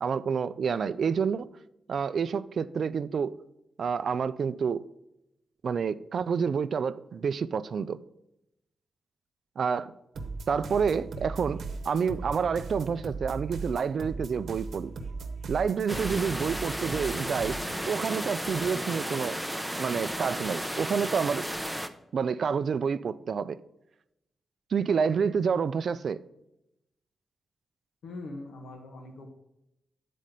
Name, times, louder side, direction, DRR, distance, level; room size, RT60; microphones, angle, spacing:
voice 1, 0.0-1.5 1.9-3.3 3.8-4.8 5.6-8.0 9.6-9.9 10.5-14.9 15.5-17.6 17.9-19.4 19.8-21.4 22.1-23.6 24.7-26.2, right 6 dB, 60° right, 0.3 m, -28 dB
sound 1, 10.1-17.8, right 3 dB, 80° right, 0.9 m, -38 dB
sound 2, 15.9-21.9, equal, 5° right, 0.5 m, -34 dB
voice 2, 28.0-29.3, left 2 dB, 90° left, 1.1 m, -42 dB
9.2 x 4.2 x 5.1 m
wide cardioid pair, 125°, 0 cm